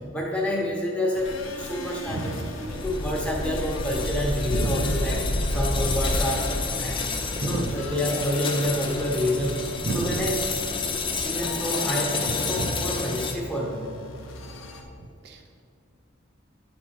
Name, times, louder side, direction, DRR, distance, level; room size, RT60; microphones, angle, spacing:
voice 1, 0.1-7.1 7.4-9.6 9.9-10.5 11.1-13.8, left 1 dB, 5° left, -3 dB, 1.0 m, -28 dB
sound 1, 1.1-14.8, left 2 dB, 75° left, 0.7 m, -37 dB
sound 2, 2.7-13.3, left 3 dB, 25° left, 0.4 m, -29 dB
voice 2, 4.5-4.8 7.4-7.7 9.9-10.2 12.6-12.8 15.2-15.6, right 3 dB, 50° right, 4 dB, 0.4 m, -31 dB
9.7 x 4.2 x 4.5 m, 2.2 s
head